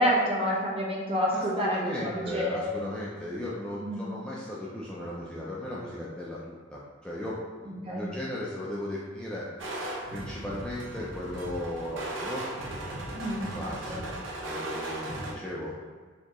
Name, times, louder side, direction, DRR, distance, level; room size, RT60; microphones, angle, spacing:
voice 1, 0.0-2.8 3.8-4.0 7.6-8.1 13.1-14.0, equal, 30° right, -4 dB, 0.9 m, -29 dB
voice 2, 1.3-7.4 7.6-9.5 10.1-12.5 12.8-13.2 13.5-14.1 14.4-15.7, left 1 dB, 5° left, -6 dB, 0.4 m, -36 dB
sound 1, 9.6-15.3, right 1 dB, 75° right, 0.7 m, -37 dB
4.3 x 2.8 x 3.0 m, 1.6 s
head